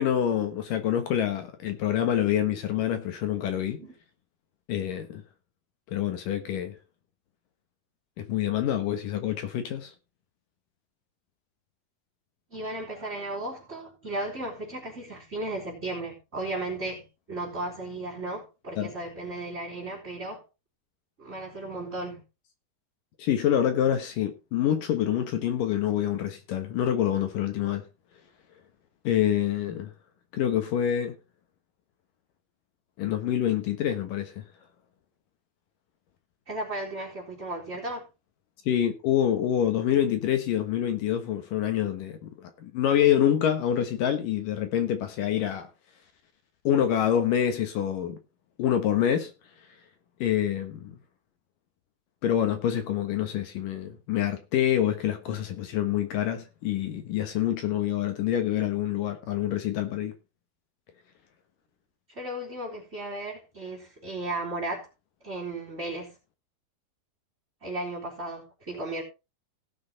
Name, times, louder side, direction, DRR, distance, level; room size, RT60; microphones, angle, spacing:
voice 1, 0.0-3.8 4.7-5.2 5.9-6.8 8.2-9.9 18.8-18.9 23.2-27.8 29.0-29.9 30.3-31.1 33.0-34.4 38.7-45.7 46.6-48.2 48.6-49.3 50.2-51.0 52.2-60.1, left 10 dB, 70° left, 2.8 m, -26 dB
voice 2, 12.5-20.4 21.2-22.2 36.5-38.1 62.1-64.9 65.2-66.2 67.6-69.0, right 2 dB, 20° right, 3.9 m, -35 dB
17.5 x 6.2 x 4.2 m
omnidirectional pair, 4.3 m